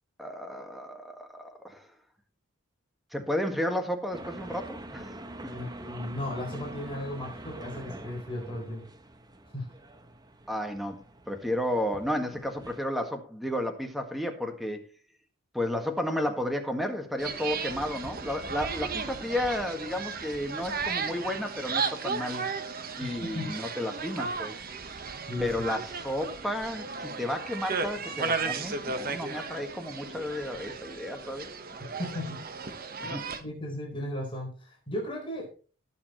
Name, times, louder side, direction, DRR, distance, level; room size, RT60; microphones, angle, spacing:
voice 1, 0.2-1.9 3.1-5.1 5.4-5.5 10.5-14.8 15.5-22.5 22.9-24.5 25.4-31.5 33.0-33.3, left 1 dB, ahead, 5 dB, 1.7 m, -32 dB
sound 1, 4.1-12.8, right 1 dB, 20° right, 0.9 m, -45 dB
voice 2, 5.5-8.9 9.5-9.7 23.0-23.5 25.3-25.5 32.0-32.4 33.4-35.5, left 1 dB, 25° left, -1 dB, 4.2 m, -35 dB
sound 2, 17.2-33.4, right 5 dB, 45° right, 1.2 m, -35 dB
18.5 x 7.1 x 3.1 m, 0.36 s
head